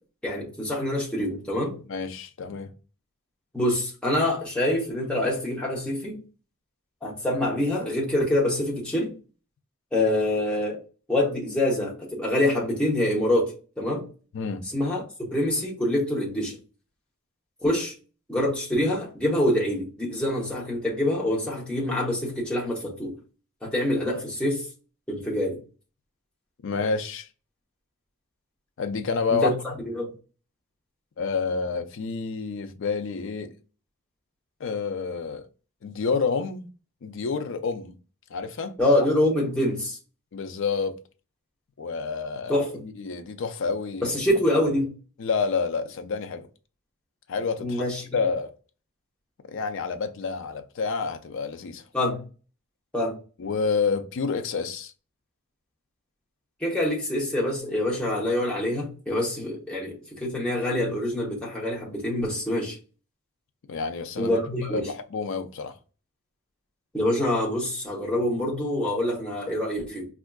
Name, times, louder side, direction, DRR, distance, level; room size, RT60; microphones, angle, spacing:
voice 1, 0.2-1.8 3.5-6.2 7.0-9.1 9.9-10.8 11.1-14.1 14.7-16.6 17.6-17.9 18.3-23.1 23.6-24.7 25.1-25.6 29.3-30.1 38.8-40.0 42.5-42.8 44.0-44.9 47.6-48.1 51.9-52.2 52.9-53.2 56.6-62.8 64.2-64.9 66.9-70.1, left 1 dB, 5° left, 0.8 m, -25 dB
voice 2, 1.9-2.7 14.3-14.7 26.6-27.3 28.8-29.5 31.2-33.5 34.6-35.4 35.8-36.6 37.0-37.9 38.3-38.7 40.3-41.0 41.8-42.5 43.0-44.2 45.2-46.5 47.3-47.9 48.1-48.5 49.5-51.8 53.4-54.9 63.7-64.4 64.7-65.7, left 5 dB, 60° left, 0.4 m, -28 dB
4.3 x 2.4 x 2.3 m
head